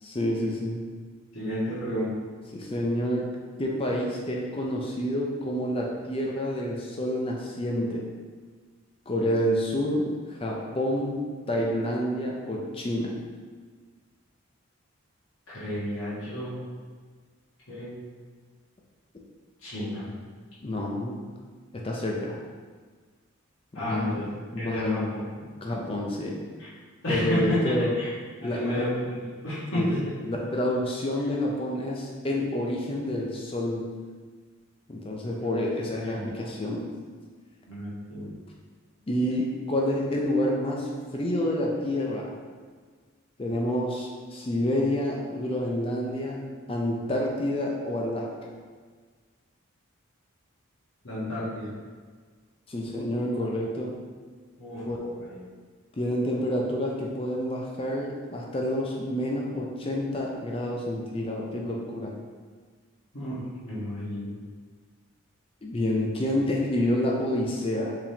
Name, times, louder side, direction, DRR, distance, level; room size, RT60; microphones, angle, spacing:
voice 1, 0.0-0.8 2.5-8.1 9.1-13.1 20.6-21.2 21.7-22.4 23.7-24.2 24.5-25.1 25.6-26.5 27.1-27.9 28.4-28.9 29.7-29.9 30.3-33.9 34.9-36.9 39.1-42.3 43.4-48.3 52.7-54.0 54.8-55.0 55.9-62.1 65.6-68.0, left 1 dB, 25° left, -1 dB, 0.4 m, -28 dB
voice 2, 1.3-2.1 15.5-16.6 17.7-17.9 19.6-20.1 23.7-24.3 24.6-25.2 26.6-26.7 27.0-28.1 28.4-30.0 36.0-36.3 37.7-38.3 51.0-51.7 54.6-55.4 63.1-64.3, equal, 75° left, -11 dB, 1.4 m, -31 dB
4.7 x 3.5 x 2.8 m, 1.5 s
head